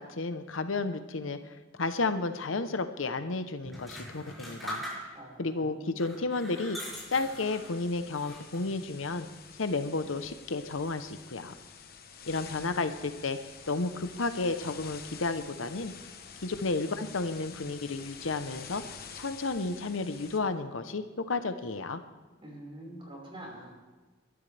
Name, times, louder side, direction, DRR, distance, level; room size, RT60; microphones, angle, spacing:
voice 1, 0.0-4.8 5.4-6.8 7.1-9.3 9.6-11.5 12.3-13.4 13.7-15.9 16.4-18.8 19.1-22.0, left 3 dB, 90° left, 10 dB, 0.9 m, -32 dB
sound 1, 3.7-5.4 5.9-7.8 8.2-8.8, equal, ahead, 5.5 m, -42 dB
voice 2, 5.1-6.0 22.4-23.7, right 1 dB, 30° right, -2 dB, 5.1 m, -46 dB
sound 2, 6.9-20.4, left 6 dB, 50° left, 1.1 m, -48 dB
22.0 x 12.5 x 3.4 m, 1.3 s
head